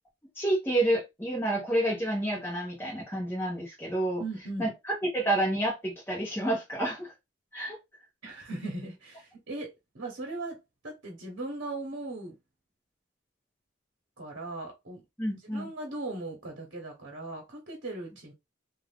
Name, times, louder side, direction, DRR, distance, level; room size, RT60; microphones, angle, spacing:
voice 1, 0.4-4.2 4.6-7.1 7.5-7.8 15.2-15.7, right 1 dB, 10° left, 1.0 m, -29 dB
voice 2, 4.2-4.7 8.2-10.6 10.8-12.3 14.2-15.0 15.4-18.3, right 2 dB, 60° right, 1.0 m, -38 dB
2.6 x 2.4 x 3.4 m
head